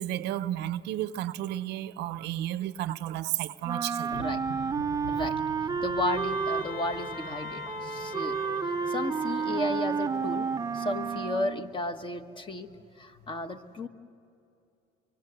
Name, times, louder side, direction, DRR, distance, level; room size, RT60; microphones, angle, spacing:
voice 1, 0.0-4.2, right 13 dB, 80° right, 0.7 m, -32 dB
Wind instrument woodwind instrument, 3.6-11.8, right 6 dB, 20° right, 0.5 m, -31 dB
sound 1, 4.1-11.3, left 2 dB, 75° left, 2.3 m, -45 dB
voice 2, 4.1-4.4 5.1-5.4 5.8-8.3 8.9-10.5 10.7-12.7 13.0-13.9, left 2 dB, 30° left, 1.3 m, -33 dB
Wind instrument woodwind instrument 2, 6.1-10.3, left 7 dB, 60° left, 1.7 m, -42 dB
24.5 x 24.0 x 8.0 m
cardioid pair, 110°, 17 cm